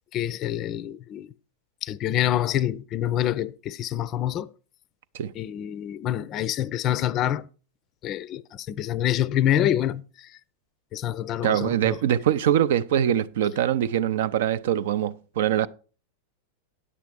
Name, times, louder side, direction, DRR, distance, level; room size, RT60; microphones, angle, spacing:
voice 1, 0.1-1.3 1.8-4.5 5.3-7.4 8.0-10.4 10.9-12.0, left 11 dB, 35° left, 0.5 m, -26 dB
voice 2, 11.4-15.7, right 10 dB, 55° right, 0.4 m, -23 dB
9.7 x 7.5 x 4.7 m
figure-of-eight pair, 90°, 0 cm